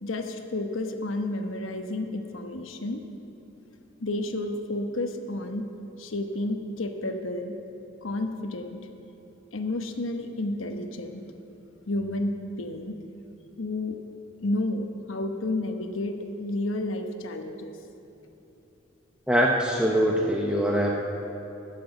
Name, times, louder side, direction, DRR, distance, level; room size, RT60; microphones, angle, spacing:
voice 1, 0.0-3.0 4.0-5.7 6.0-7.5 8.0-8.8 9.5-11.2 11.9-13.0 13.6-14.0 14.4-17.7, left 2 dB, 75° left, 5 dB, 1.0 m, -31 dB
voice 2, 19.3-20.9, equal, 5° right, -1 dB, 0.7 m, -23 dB
13.0 x 7.7 x 7.9 m, 3.0 s
head